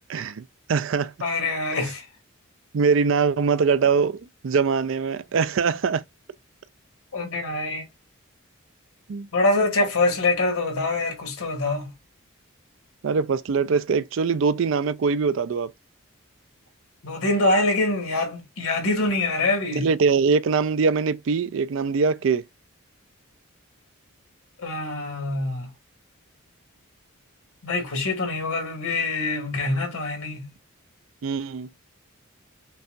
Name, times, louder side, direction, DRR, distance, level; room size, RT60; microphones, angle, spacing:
voice 1, 0.1-1.1 2.7-4.2 4.4-6.0 9.1-9.3 13.0-15.7 19.8-22.4 31.2-31.7, right 5 dB, 60° right, 0.4 m, -22 dB
voice 2, 1.2-2.1 7.1-7.8 9.3-11.9 17.0-19.9 24.6-25.7 27.6-30.5, left 2 dB, 90° left, 1.7 m, -24 dB
5.4 x 2.3 x 2.5 m
head